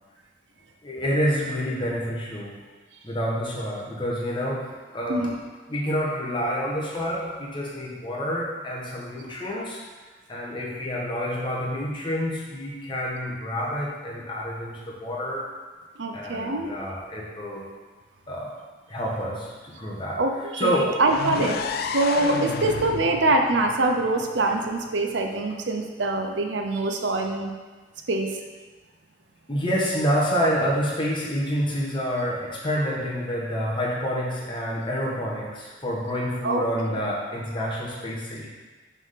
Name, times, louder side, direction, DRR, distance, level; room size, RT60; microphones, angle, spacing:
voice 1, 0.8-2.6 3.0-5.3 5.7-9.8 10.3-15.4 16.1-17.7 18.3-18.5 18.9-20.9 21.4-21.5 29.5-38.5, equal, 25° left, -4 dB, 1.3 m, -28 dB
voice 2, 16.0-16.7 20.2-21.6 21.9-27.5 28.1-28.4 36.4-36.7, right 2 dB, 75° right, 4 dB, 0.7 m, -24 dB
sound 1, 21.0-24.9, left 5 dB, 55° left, 0.3 m, -32 dB
6.0 x 3.7 x 5.8 m, 1.3 s
head